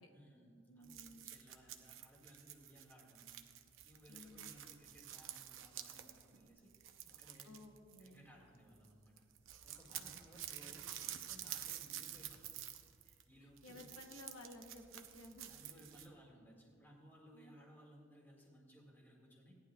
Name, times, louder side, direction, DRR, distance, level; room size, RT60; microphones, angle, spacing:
voice 1, 0.0-7.5 8.0-9.1 9.6-12.5 13.0-13.9 15.5-19.6, equal, 10° left, -3 dB, 1.9 m, -62 dB
voice 2, 0.7-1.3 4.1-4.5 7.4-8.2 9.9-10.8 13.4-15.5 17.3-17.5, left 1 dB, 80° left, 3 dB, 0.9 m, -57 dB
sound 1, 0.8-8.5 8.7-8.9 9.2-16.1, right 11 dB, 75° right, 0.7 m, -50 dB
17.5 x 10.5 x 2.3 m, 2.5 s
head